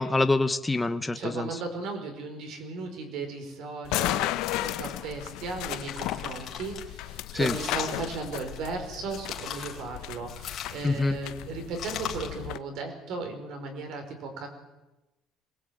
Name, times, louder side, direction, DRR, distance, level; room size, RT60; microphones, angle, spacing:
voice 1, 0.0-1.5 7.3-7.5 10.8-11.2, left 3 dB, 10° left, 9 dB, 0.8 m, -25 dB
voice 2, 1.2-4.3 4.6-14.5, right 4 dB, 60° right, 5 dB, 5.2 m, -36 dB
sound 1, 3.8-12.6, left 16 dB, 90° left, 0.9 m, -35 dB
sound 2, 4.2-5.1 5.6-6.8 7.3-8.7 9.1-9.8 10.3-11.2 11.7-12.4, left 9 dB, 45° left, 3.6 m, -39 dB
22.0 x 21.0 x 9.0 m, 1.0 s
cardioid pair, 170°, 0 cm